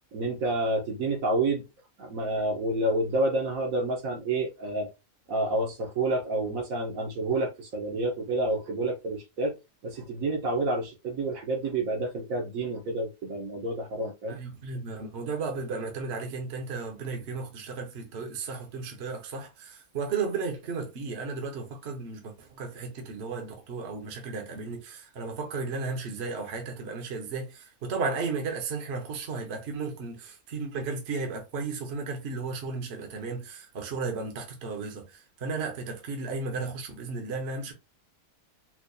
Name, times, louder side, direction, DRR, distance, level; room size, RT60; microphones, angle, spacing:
voice 1, 0.1-1.6 2.0-4.9 5.3-9.5 9.8-14.4, right 2 dB, 65° right, 1.4 m, -29 dB
voice 2, 14.3-37.7, right 4 dB, 50° right, 1.1 m, -34 dB
4.5 x 2.4 x 2.6 m
omnidirectional pair, 1.6 m